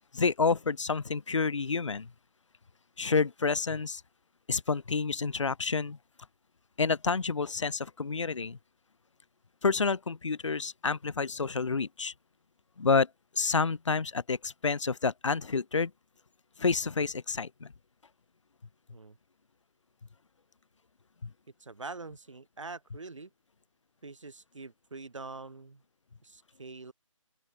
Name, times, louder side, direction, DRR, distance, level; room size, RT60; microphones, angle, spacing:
voice 1, 0.1-2.1 3.0-4.0 4.5-6.0 6.8-8.6 9.6-12.1 12.8-13.1 13.4-15.9 16.6-17.7 21.2-21.3, left 4 dB, 65° left, 0.9 m, -29 dB
voice 2, 21.6-23.3 24.0-25.8 26.2-26.9, right 3 dB, 65° right, 5.2 m, -44 dB
open air
hypercardioid pair, 175°, 17 cm